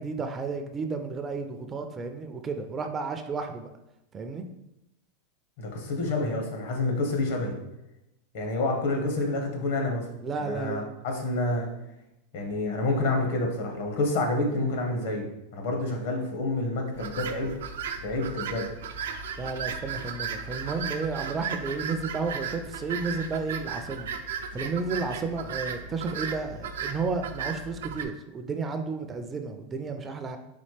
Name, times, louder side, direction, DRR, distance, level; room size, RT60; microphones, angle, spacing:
voice 1, 0.0-3.7 4.1-4.4 10.2-10.9 19.4-24.1 24.5-30.4, right 4 dB, 20° right, 6 dB, 0.4 m, -32 dB
voice 2, 5.6-7.6 8.3-10.0 10.4-11.7 12.3-15.3 15.5-17.5 18.0-18.7, left 2 dB, 65° left, 2 dB, 1.1 m, -28 dB
sound 1, 16.9-28.0, right 6 dB, 90° right, 0.4 m, -35 dB
4.1 x 3.7 x 3.2 m, 0.88 s
supercardioid pair, 145°, 0 cm